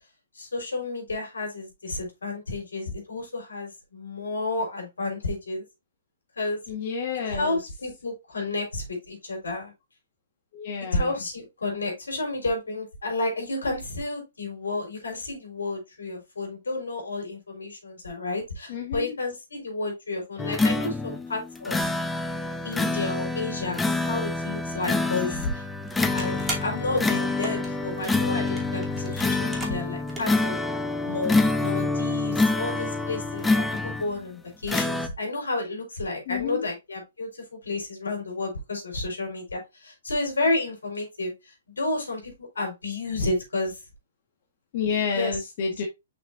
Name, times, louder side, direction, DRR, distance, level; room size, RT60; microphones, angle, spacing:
voice 1, 0.3-5.6 6.4-6.6 7.1-9.7 10.9-21.9 22.6-25.6 26.1-30.6 31.0-43.8 45.1-45.4, left 2 dB, 80° left, 1 dB, 4.5 m, -31 dB
voice 2, 6.7-7.6 10.5-11.1 18.7-19.1 36.3-36.6 44.7-45.8, left 6 dB, 45° left, 1 dB, 1.7 m, -29 dB
sound 1, 20.4-34.2 34.7-35.1, left 3 dB, 10° left, 0.7 m, -26 dB
sound 2, 25.8-30.5, right 2 dB, 10° right, 2.8 m, -39 dB
6.5 x 5.9 x 2.7 m, 0.23 s
hypercardioid pair, 125°, 0 cm